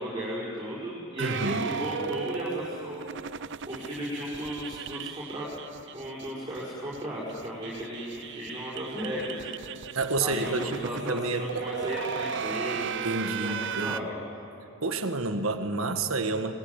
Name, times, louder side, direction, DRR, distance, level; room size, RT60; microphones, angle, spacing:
voice 1, 0.0-3.0 3.7-5.5 5.9-9.5 10.2-14.1, equal, 20° right, -8 dB, 6.0 m, -35 dB
sound 1, 1.2-6.3 6.5-6.6 6.9-7.0 7.3-14.0, right 7 dB, 60° right, 0.6 m, -36 dB
voice 2, 1.2-1.7 10.0-11.7 12.8-14.1 14.8-16.5, right 3 dB, 80° right, 7 dB, 1.7 m, -30 dB
27.0 x 21.0 x 9.9 m, 2.9 s
head